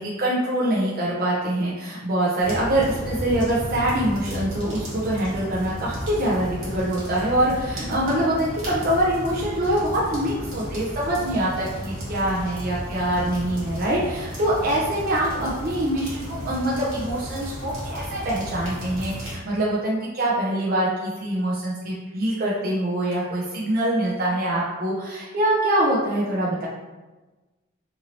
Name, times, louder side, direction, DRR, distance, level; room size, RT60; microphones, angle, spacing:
voice 1, 0.0-26.7, right 1 dB, 45° right, -6 dB, 0.5 m, -24 dB
sound 1, 2.4-19.4, equal, 80° right, 1.2 m, -33 dB
2.8 x 2.6 x 2.9 m, 1.2 s
head